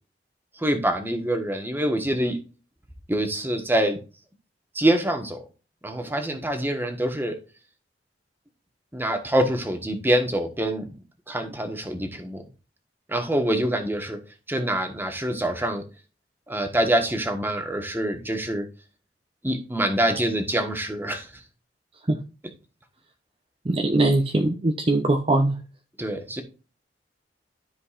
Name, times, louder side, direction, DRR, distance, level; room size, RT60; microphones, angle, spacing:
voice 1, 0.6-2.4 3.1-4.0 4.7-5.4 5.8-7.3 8.9-10.9 11.3-12.4 13.1-14.2 14.5-15.8 16.5-18.7 19.4-21.3 26.0-26.4, right 1 dB, 10° right, 1.3 m, -25 dB
voice 2, 23.7-25.6, right 2 dB, 30° right, 0.7 m, -21 dB
12.5 x 5.2 x 2.5 m
head